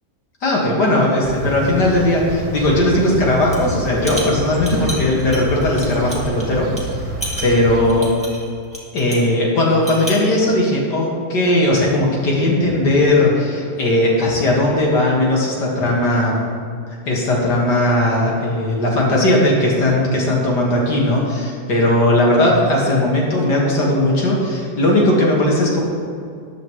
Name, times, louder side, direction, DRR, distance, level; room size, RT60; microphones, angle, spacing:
voice 1, 0.4-6.7 7.4-8.1 8.9-16.4 17.1-25.8, left 1 dB, 80° left, -3 dB, 2.5 m, -17 dB
sound 1, 1.2-8.0, equal, 65° right, 1.9 m, -28 dB
sound 2, 3.4-3.7 4.0-6.4 6.8-6.9 7.2-9.3 9.7-10.3, right 1 dB, 5° left, 1.8 m, -31 dB
13.5 x 10.0 x 3.2 m, 2.3 s
omnidirectional pair, 1.8 m